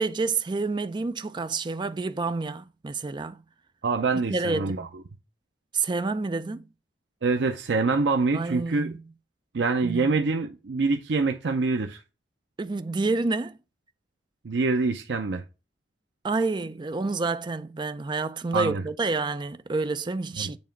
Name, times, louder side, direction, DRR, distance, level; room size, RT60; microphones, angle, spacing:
voice 1, 0.0-3.4 4.3-4.9 5.7-6.6 8.3-9.0 9.8-10.1 12.6-13.6 16.2-20.6, right 3 dB, 25° right, 0.4 m, -28 dB
voice 2, 3.8-4.9 7.2-8.9 9.5-12.0 14.4-15.4 18.5-18.8 20.4-20.6, right 3 dB, 80° right, 0.6 m, -25 dB
7.1 x 3.0 x 5.7 m
head